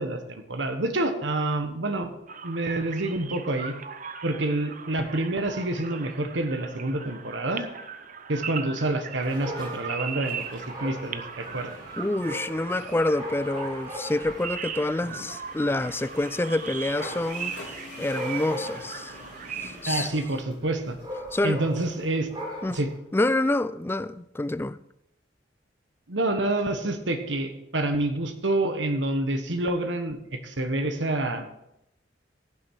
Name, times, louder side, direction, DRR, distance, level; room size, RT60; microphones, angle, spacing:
voice 1, 0.0-2.1 2.4-3.7 4.2-7.7 8.3-11.8 19.9-21.0 21.4-22.3 22.7-22.9 26.1-31.5, right 2 dB, 85° right, 1.4 m, -28 dB
sound 1, 2.3-19.9, right 7 dB, 45° right, 0.8 m, -39 dB
Dog, 9.2-23.0, equal, 30° right, 4.0 m, -40 dB
cavin-road, 11.4-19.8, left 2 dB, 75° left, 3.8 m, -46 dB
voice 2, 12.0-17.5 18.0-19.1 19.6-20.1 21.3-21.6 22.6-22.8 23.1-24.8, left 2 dB, 15° left, 0.3 m, -27 dB
16.0 x 7.4 x 4.7 m
head